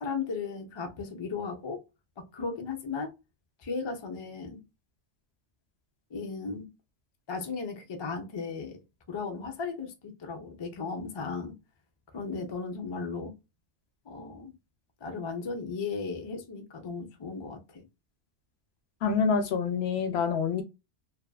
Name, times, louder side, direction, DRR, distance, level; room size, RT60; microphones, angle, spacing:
voice 1, 0.0-1.8 2.2-3.1 3.6-4.6 6.1-6.7 7.3-8.8 9.1-11.5 12.1-13.3 14.1-14.5 15.0-17.9, left 4 dB, 45° left, 0.3 m, -36 dB
voice 2, 19.0-20.6, left 5 dB, 65° left, 0.8 m, -26 dB
2.7 x 2.4 x 2.2 m
omnidirectional pair, 1.2 m